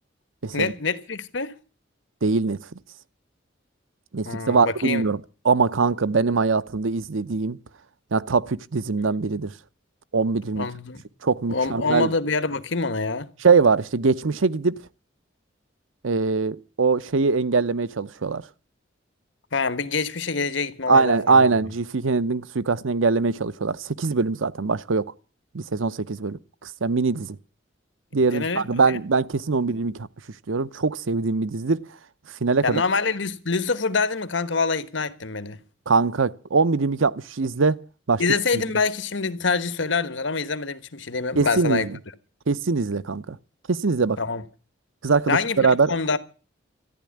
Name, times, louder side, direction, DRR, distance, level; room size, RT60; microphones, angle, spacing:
voice 1, 0.5-1.5 4.2-5.1 10.5-11.0 11.5-13.3 19.5-21.4 28.3-29.0 32.6-35.6 38.2-41.9 44.2-44.4 45.3-46.2, left 4 dB, 70° left, 1.3 m, -25 dB
voice 2, 2.2-2.6 4.1-5.2 5.4-7.6 8.1-9.5 10.1-10.7 11.2-12.1 13.4-14.8 16.0-18.4 20.9-25.1 25.5-27.4 28.1-30.1 30.5-31.8 32.4-32.8 35.9-37.8 38.1-38.2 41.4-41.9 42.5-43.4 43.7-44.2 45.0-45.9, right 4 dB, 90° right, 0.8 m, -22 dB
14.0 x 10.5 x 8.6 m
head